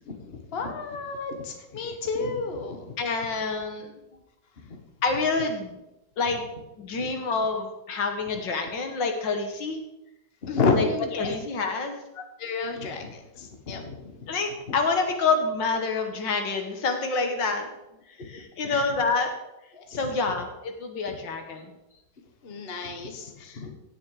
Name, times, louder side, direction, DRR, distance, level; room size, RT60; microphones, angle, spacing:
voice 1, 0.0-3.0 4.6-4.8 7.0-7.1 10.4-11.3 12.1-14.3 14.7-14.8 18.2-19.0 19.7-20.1 22.4-23.7, left 4 dB, 35° left, 4 dB, 1.4 m, -31 dB
voice 2, 3.0-3.9 5.0-5.8 6.2-6.4 6.8-9.8 10.8-10.9 11.2-12.0 14.3-17.7 18.2-19.3 19.9-21.7, left 4 dB, 70° left, 5 dB, 2.0 m, -27 dB
17.0 x 6.4 x 4.8 m, 0.92 s
omnidirectional pair, 2.1 m